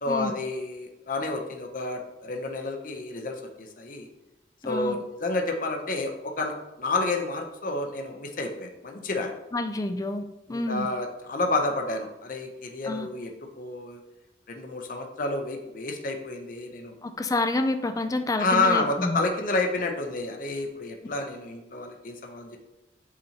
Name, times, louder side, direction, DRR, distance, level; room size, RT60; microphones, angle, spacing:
voice 1, 0.0-4.1 4.6-9.4 10.5-14.0 14.5-16.9 18.4-22.6, left 2 dB, 50° left, 3 dB, 0.8 m, -30 dB
voice 2, 4.6-5.0 9.5-10.2 10.5-10.9 12.9-13.1 17.0-19.2, left 2 dB, 20° left, 7 dB, 0.4 m, -28 dB
8.4 x 4.2 x 2.9 m, 0.96 s
head